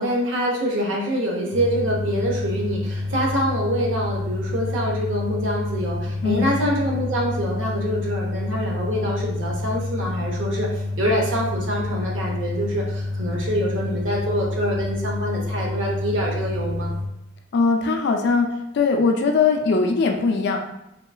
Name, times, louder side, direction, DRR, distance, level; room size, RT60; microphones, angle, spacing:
voice 1, 0.0-16.9, equal, 80° right, -1 dB, 0.7 m, -25 dB
sound 1, 1.5-17.1, left 2 dB, 40° right, 0.3 m, -28 dB
voice 2, 6.2-6.5 17.5-18.5 18.7-20.6, left 4 dB, 60° left, 4 dB, 0.4 m, -20 dB
2.8 x 2.4 x 2.2 m, 0.84 s
head